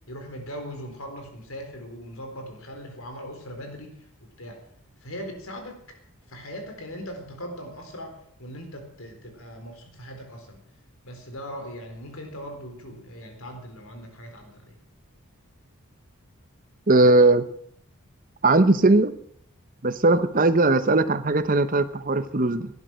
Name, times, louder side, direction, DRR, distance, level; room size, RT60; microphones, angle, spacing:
voice 1, 0.1-4.6 5.0-6.0 6.3-10.6 11.0-14.7, equal, 75° left, 5 dB, 4.1 m, -40 dB
voice 2, 16.9-17.4 18.4-19.1 19.8-22.7, right 2 dB, 40° right, 12 dB, 0.9 m, -19 dB
18.0 x 11.0 x 6.4 m, 0.67 s
head